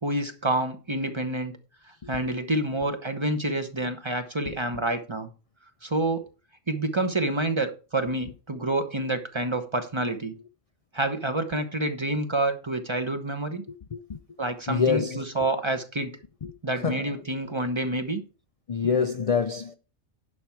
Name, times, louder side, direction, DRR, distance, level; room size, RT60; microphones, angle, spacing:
voice 1, 0.0-1.5 2.1-5.3 5.8-6.2 6.7-10.3 10.9-13.6 14.4-16.2 16.6-18.2, right 2 dB, 25° right, 1.0 m, -28 dB
voice 2, 2.0-2.3 13.7-14.2 14.7-15.2 16.4-17.2 18.7-19.7, left 6 dB, 50° left, 0.4 m, -27 dB
11.0 x 5.9 x 4.6 m
omnidirectional pair, 1.3 m